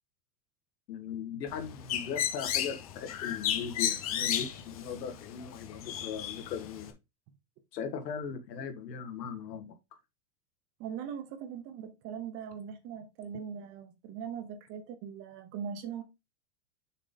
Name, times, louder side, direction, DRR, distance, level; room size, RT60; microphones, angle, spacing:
voice 1, 0.9-6.9 7.7-9.7, left 7 dB, 80° left, 1.8 m, -38 dB
Bird, 1.5-6.9, left 10 dB, 25° left, 0.3 m, -34 dB
voice 2, 10.8-16.0, right 7 dB, 30° right, 0.9 m, -40 dB
6.4 x 3.8 x 4.0 m
supercardioid pair, 160°, 48 cm